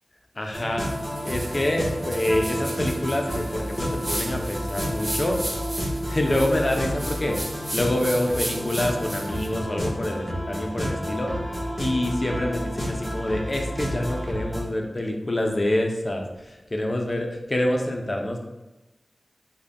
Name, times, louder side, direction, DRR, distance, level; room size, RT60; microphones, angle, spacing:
voice 1, 0.4-0.9 1.2-5.4 6.1-7.4 7.7-11.3 11.8-18.4, left 1 dB, 35° left, 2 dB, 0.5 m, -26 dB
sound 1, 0.5-14.6, equal, 10° left, 1.2 m, -30 dB
sound 2, 0.8-9.5, right 1 dB, 30° right, 0.6 m, -36 dB
3.7 x 2.2 x 3.5 m, 1.0 s
wide cardioid pair, 90°, 0 cm